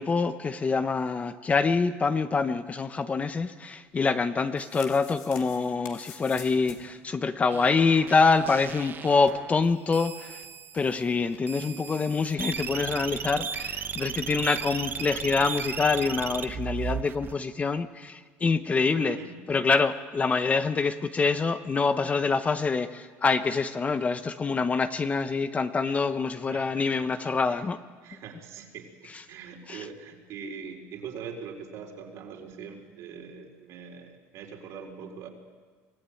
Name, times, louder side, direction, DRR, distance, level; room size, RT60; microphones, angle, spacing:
voice 1, 0.0-10.4 10.7-19.2 19.5-27.8 29.7-29.8, left 4 dB, 25° left, 11 dB, 0.9 m, -26 dB
sound 1, 4.3-7.0 7.3-7.4 7.5-7.6 8.0-9.9 10.1-10.2 10.4-10.9 11.3-11.9, left 8 dB, 75° left, 2.9 m, -48 dB
sound 2, 7.5-9.6 9.9-10.9 11.5-17.3, right 7 dB, 35° right, 0.9 m, -36 dB
voice 2, 18.9-19.4 25.9-26.1 26.5-27.1 27.5-27.6 28.0-35.3, right 6 dB, 65° right, 2 dB, 4.2 m, -42 dB
24.5 x 15.0 x 9.1 m, 1.5 s
supercardioid pair, 110°, 6 cm